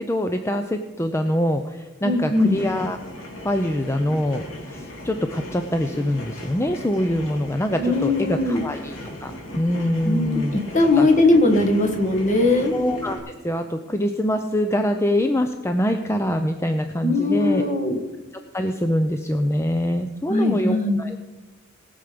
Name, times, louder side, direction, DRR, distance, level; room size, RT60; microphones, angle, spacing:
voice 1, 0.0-3.0 3.4-4.4 4.7-11.1 12.7-13.2 13.4-17.6 18.5-21.2, left 1 dB, 15° left, 6 dB, 0.6 m, -24 dB
voice 2, 2.0-2.6 7.8-8.6 10.0-10.4 10.7-12.7 17.0-18.0 20.3-21.0, left 2 dB, 40° left, 3 dB, 1.8 m, -19 dB
sound 1, 2.2-13.2, left 1 dB, 90° left, 2.6 m, -37 dB
19.5 x 7.0 x 5.2 m, 1.1 s
head